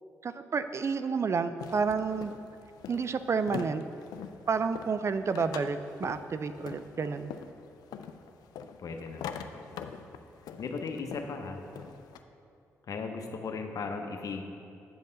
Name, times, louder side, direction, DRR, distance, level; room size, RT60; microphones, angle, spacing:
voice 1, 0.2-2.3 2.9-3.8 4.5-7.3, right 5 dB, 45° right, 11 dB, 0.4 m, -30 dB
sound 1, 1.6-12.2, left 7 dB, 80° left, 0.3 m, -44 dB
voice 2, 8.8-10.1 10.6-11.6 12.9-14.4, left 4 dB, 60° left, 4 dB, 0.8 m, -37 dB
8.8 x 5.4 x 3.9 m, 2.6 s
supercardioid pair, 50°, 7 cm